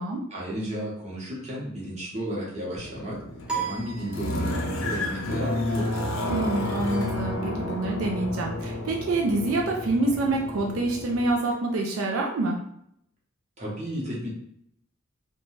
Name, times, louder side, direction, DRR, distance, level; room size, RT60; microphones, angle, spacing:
voice 1, 0.3-3.2 3.5-6.0 13.6-14.3, equal, 35° right, -5 dB, 0.8 m, -33 dB
sound 1, 2.8-11.3, left 1 dB, 80° left, 0.5 m, -31 dB
sound 2, 3.5-4.9, right 6 dB, 5° right, 0.3 m, -34 dB
voice 2, 6.3-12.6, right 2 dB, 80° right, 0 dB, 0.4 m, -26 dB
2.6 x 2.2 x 3.1 m, 0.73 s
head